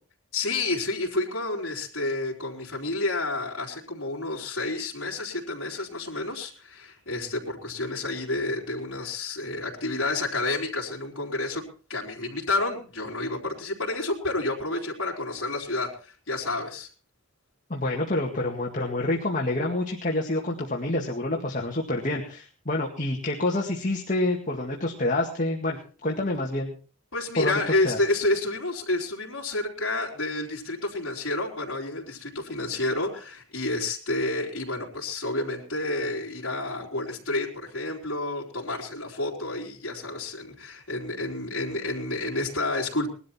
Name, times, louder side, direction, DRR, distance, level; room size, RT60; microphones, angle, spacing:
voice 1, 0.3-11.6 11.9-16.9 27.1-43.1, left 2 dB, 55° left, -5 dB, 4.3 m, -30 dB
voice 2, 17.7-26.7 27.4-28.0, left 2 dB, 35° left, -1 dB, 2.1 m, -27 dB
20.5 x 12.5 x 4.4 m, 0.39 s
head